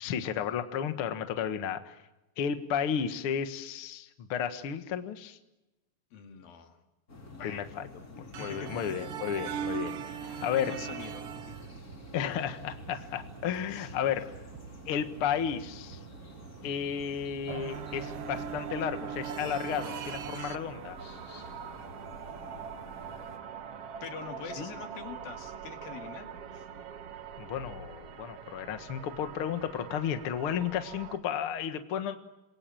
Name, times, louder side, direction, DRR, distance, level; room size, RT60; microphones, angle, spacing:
voice 1, 0.0-2.0 2.4-5.4 7.4-7.9 8.4-10.7 12.1-14.3 14.9-16.0 16.6-21.0 24.6-24.7 27.4-32.2, left 8 dB, 50° left, 8 dB, 2.0 m, -33 dB
voice 2, 6.1-6.8 7.4-7.7 8.4-9.0 10.3-11.5 12.9-13.1 13.7-14.0 14.2-14.3 24.0-26.7, left 6 dB, 85° left, 4 dB, 4.2 m, -44 dB
sound 1, 7.1-23.4, left 2 dB, 25° left, 3.3 m, -50 dB
sound 2, 8.3-20.6, right 8 dB, 75° right, 1.3 m, -41 dB
sound 3, 17.5-31.2, right 7 dB, 50° right, 2.2 m, -44 dB
28.5 x 22.5 x 7.8 m, 0.98 s
omnidirectional pair, 4.0 m